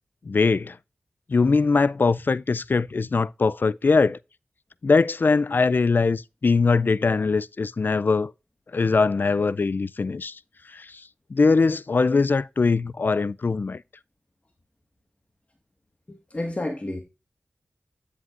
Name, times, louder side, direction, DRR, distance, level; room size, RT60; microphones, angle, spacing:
voice 1, 0.3-0.8 1.3-4.2 4.8-8.3 8.7-10.4 10.7-11.0 11.3-13.8, left 4 dB, 55° left, 0.3 m, -21 dB
voice 2, 16.1-17.0, left 1 dB, 35° left, 1.5 m, -30 dB
9.6 x 7.6 x 2.5 m
wide cardioid pair, 60°, 4 cm